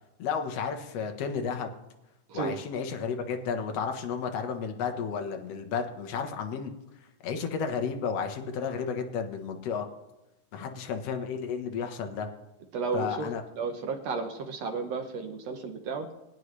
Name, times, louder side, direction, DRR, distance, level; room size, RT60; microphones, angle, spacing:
voice 1, 0.2-1.7 2.3-6.7 7.2-9.9 10.5-12.3 12.9-13.4, left 6 dB, 60° left, 5 dB, 1.9 m, -32 dB
voice 2, 12.7-13.3 13.6-16.1, right 4 dB, 65° right, 4 dB, 1.7 m, -33 dB
22.0 x 9.5 x 3.2 m, 0.95 s
omnidirectional pair, 3.9 m